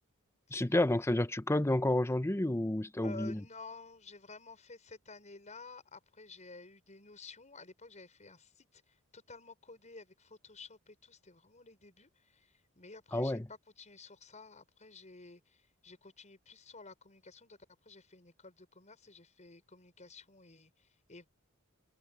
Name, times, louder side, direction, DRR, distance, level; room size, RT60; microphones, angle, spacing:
voice 1, 0.5-3.4 13.1-13.5, left 1 dB, 10° left, 0.7 m, -30 dB
voice 2, 3.0-17.6 17.8-21.3, left 3 dB, 35° left, 6.1 m, -53 dB
head